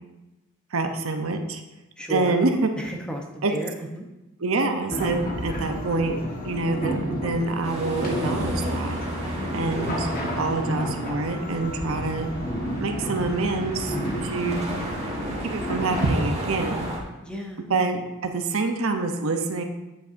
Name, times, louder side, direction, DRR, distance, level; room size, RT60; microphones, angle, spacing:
voice 1, 0.7-1.6 2.1-2.7 3.4-3.5 4.4-9.0 9.5-10.1 10.4-12.3 12.8-14.0 14.2-14.7 15.4-16.9 17.7-19.6, right 3 dB, 65° right, 5 dB, 0.7 m, -26 dB
voice 2, 2.0-2.4 2.8-4.1 9.4-9.6 17.2-17.7, equal, 5° left, 0 dB, 0.8 m, -34 dB
sound 1, 4.9-16.3, equal, 40° left, 1.4 m, -31 dB
sound 2, 7.6-17.0, right 1 dB, 30° right, 1.5 m, -34 dB
9.3 x 7.9 x 2.6 m, 1.0 s
head